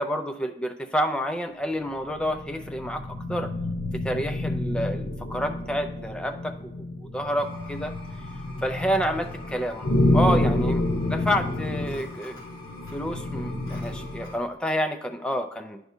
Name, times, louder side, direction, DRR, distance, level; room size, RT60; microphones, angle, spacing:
voice 1, 0.0-3.5 3.9-6.7 7.1-7.9 8.6-12.4 12.9-15.8, equal, 5° left, 6 dB, 0.4 m, -29 dB
sound 1, 1.8-14.4, left 1 dB, 80° left, 0.9 m, -29 dB
sound 2, 7.4-14.4, left 3 dB, 20° left, 2.4 m, -46 dB
10.0 x 4.7 x 2.7 m, 0.79 s
head